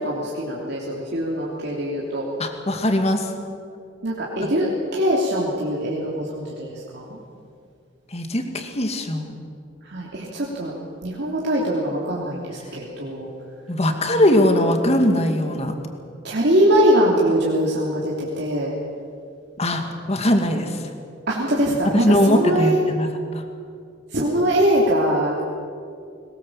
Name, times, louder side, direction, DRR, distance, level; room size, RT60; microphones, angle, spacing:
voice 1, 0.0-2.3 4.0-7.2 9.9-10.7 11.0-13.3 16.2-18.7 21.3-22.9 24.1-25.4, equal, 60° right, -5 dB, 3.1 m, -22 dB
voice 2, 2.4-3.3 8.1-9.4 13.7-15.7 19.6-20.8 21.8-23.1, left 1 dB, 35° left, 5 dB, 2.2 m, -20 dB
22.0 x 20.5 x 7.5 m, 2.4 s
head